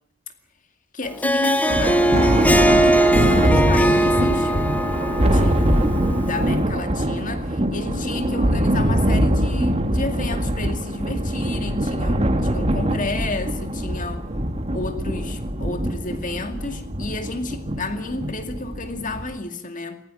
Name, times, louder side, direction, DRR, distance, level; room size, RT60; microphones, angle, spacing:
voice 1, 0.9-4.6 5.2-14.3 14.7-20.0, left 2 dB, 40° left, 2.2 m, -31 dB
Harp, 1.0-6.5, right 1 dB, 10° left, 1.2 m, -20 dB
Thunder, 1.7-19.4, right 1 dB, 30° right, 1.7 m, -23 dB
18.5 x 17.5 x 9.8 m
head